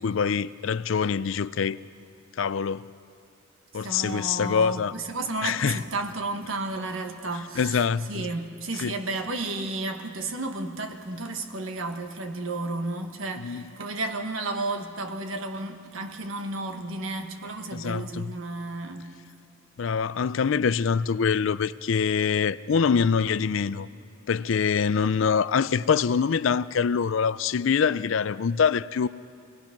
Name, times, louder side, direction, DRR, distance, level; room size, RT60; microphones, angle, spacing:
voice 1, 0.0-1.8 2.4-2.9 3.7-4.9 5.4-5.8 7.6-8.3 8.8-8.9 13.4-13.6 17.7-18.3 19.8-23.9 24.3-29.1, left 6 dB, 65° left, 0.4 m, -24 dB
voice 2, 3.8-19.1, right 2 dB, 70° right, 1.4 m, -32 dB
25.5 x 18.5 x 5.9 m
head